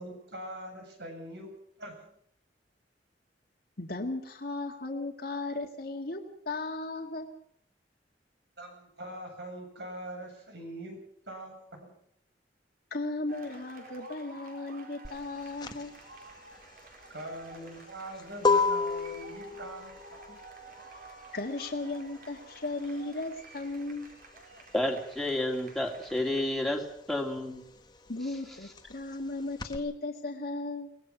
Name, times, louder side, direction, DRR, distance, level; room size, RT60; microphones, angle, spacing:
voice 1, 0.0-1.5 1.8-2.1 8.6-11.0 11.3-11.9 17.1-20.4, right 1 dB, 70° right, 3 dB, 8.0 m, -43 dB
voice 2, 3.8-7.3 12.9-15.9 21.3-24.1 28.1-30.9, left 2 dB, 60° left, 1 dB, 2.0 m, -36 dB
sound 1, 13.3-26.4, right 3 dB, 55° right, 4.7 m, -51 dB
sound 2, 15.0-25.3 25.6-29.8, left 4 dB, 25° left, 1.4 m, -32 dB
voice 3, 24.7-27.6, left 1 dB, ahead, 1 dB, 2.7 m, -30 dB
23.5 x 19.5 x 6.0 m, 0.68 s
head